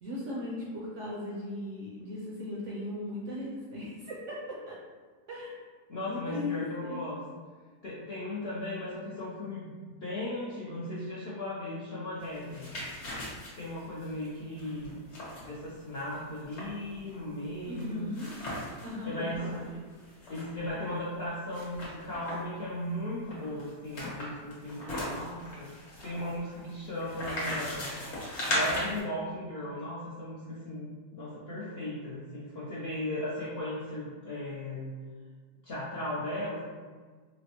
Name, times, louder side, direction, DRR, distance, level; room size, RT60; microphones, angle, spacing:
voice 1, 0.0-4.8 5.3-5.5 6.1-7.1 17.7-18.3 18.8-19.6, left 2 dB, 70° right, -5 dB, 0.7 m, -37 dB
voice 2, 5.9-7.2 7.8-9.7 10.0-12.8 13.6-15.0 15.4-18.1 19.0-19.8 20.2-25.7 26.0-27.9 28.4-34.9 35.6-36.6, left 1 dB, 65° left, -7 dB, 0.6 m, -37 dB
sound 1, 12.3-18.9 19.3-19.4 19.7-20.9 21.5-22.6 23.3-29.0, left 1 dB, 50° left, 1.1 m, -37 dB
4.1 x 2.0 x 2.8 m, 1.5 s
omnidirectional pair, 1.7 m